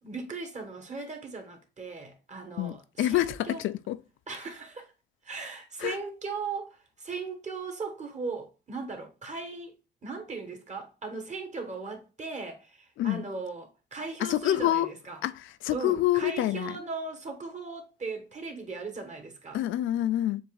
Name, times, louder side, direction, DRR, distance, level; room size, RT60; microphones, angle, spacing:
voice 1, 0.0-3.6 4.3-4.9 5.2-9.7 10.0-15.2 15.7-19.6, right 4 dB, 35° right, 1.5 m, -38 dB
voice 2, 2.6-4.0 5.8-6.0 13.0-13.3 14.2-14.9 15.2-15.3 15.6-16.8 19.5-20.4, left 13 dB, 80° left, 0.4 m, -27 dB
7.1 x 2.6 x 2.4 m
cardioid pair, 90°, 20 cm